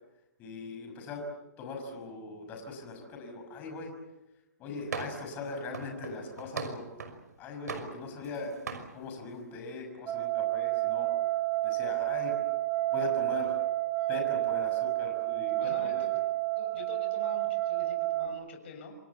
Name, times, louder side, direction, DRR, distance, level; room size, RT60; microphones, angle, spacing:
voice 1, 0.4-1.2 1.6-3.9 4.6-6.8 7.4-8.5 8.9-11.1 11.6-12.3 12.9-13.5 14.1-16.0, left 3 dB, 20° left, 3 dB, 5.7 m, -40 dB
sound 1, 4.9-5.3 5.7-7.2 7.7-8.4 8.7-8.9, right 5 dB, 80° right, 5.9 m, -39 dB
sound 2, 10.1-18.3, right 17 dB, 15° right, 2.7 m, -30 dB
voice 2, 15.6-16.1 16.6-19.0, left 5 dB, 40° left, 4 dB, 7.0 m, -46 dB
28.0 x 24.0 x 7.2 m, 0.98 s
hypercardioid pair, 165°, 9 cm